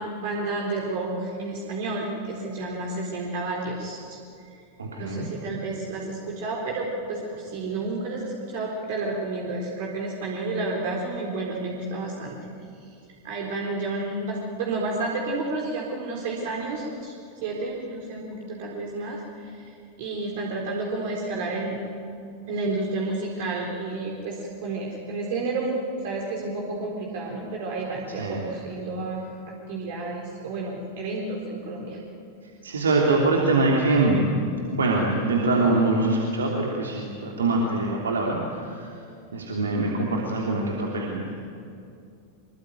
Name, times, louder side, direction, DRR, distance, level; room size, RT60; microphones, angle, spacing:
voice 1, 0.0-4.2 5.0-12.4 13.2-17.1 17.4-19.6 20.0-21.8 22.5-32.0, right 2 dB, 50° right, -1 dB, 4.0 m, -31 dB
voice 2, 4.8-5.3 28.1-28.4 32.4-34.3 34.7-38.9 39.3-41.4, right 2 dB, 70° right, -2 dB, 3.1 m, -24 dB
25.0 x 23.0 x 9.2 m, 2.4 s
figure-of-eight pair, 90°, 0 cm